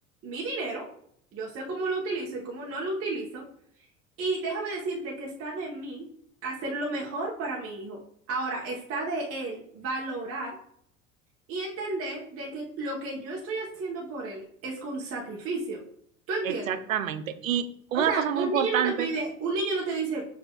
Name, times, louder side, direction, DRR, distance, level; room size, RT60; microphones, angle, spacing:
voice 1, 0.2-0.8 1.3-3.4 4.2-6.1 6.4-8.0 8.3-10.5 11.5-15.8 16.3-16.8 17.9-20.3, right 3 dB, 35° right, -3 dB, 1.1 m, -32 dB
voice 2, 16.4-19.1, right 9 dB, 85° right, 10 dB, 0.5 m, -28 dB
7.0 x 2.8 x 2.3 m, 0.67 s
figure-of-eight pair, 70°, 39 cm